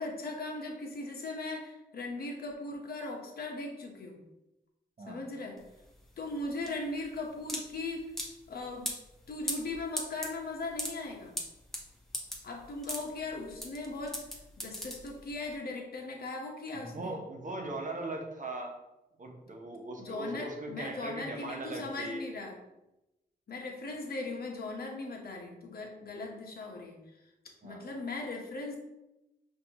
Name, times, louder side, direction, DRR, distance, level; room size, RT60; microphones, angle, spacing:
voice 1, 0.0-4.2 5.1-5.6 6.2-8.1 8.5-8.9 9.3-11.4 12.4-14.2 14.6-17.2 20.0-22.6 23.5-27.0 27.6-28.8, left 2 dB, 60° left, 1 dB, 1.0 m, -38 dB
voice 2, 5.0-5.3 16.7-18.8 19.2-22.2 27.6-27.8, right 2 dB, 45° right, 1 dB, 1.0 m, -39 dB
sound 1, 5.6-15.5, equal, ahead, 1.0 m, -40 dB
5.2 x 2.7 x 2.9 m, 0.94 s
cardioid pair, 50°, 18 cm